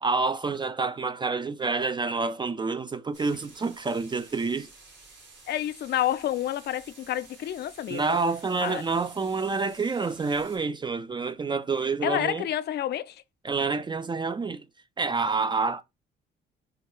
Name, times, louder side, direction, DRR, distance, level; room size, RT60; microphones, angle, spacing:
voice 1, 0.0-4.7 7.9-12.5 13.4-14.7 15.0-15.8, right 4 dB, 25° right, 0.3 m, -28 dB
sound 1, 3.1-10.6, right 3 dB, 70° right, 2.0 m, -52 dB
voice 2, 5.5-8.0 8.6-8.8 12.0-13.2, left 12 dB, 55° left, 0.4 m, -29 dB
3.4 x 2.2 x 2.9 m
cardioid pair, 90°, 20 cm